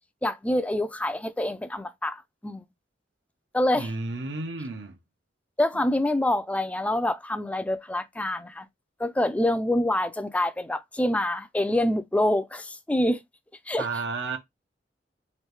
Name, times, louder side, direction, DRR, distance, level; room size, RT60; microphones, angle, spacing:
voice 1, 0.2-2.7 3.5-3.9 5.6-8.7 9.0-13.2 13.7-13.9, left 1 dB, 10° left, 0.3 m, -26 dB
voice 2, 3.7-5.0 5.7-5.8 13.8-14.4, right 3 dB, 85° right, 0.8 m, -32 dB
3.1 x 2.6 x 3.2 m
head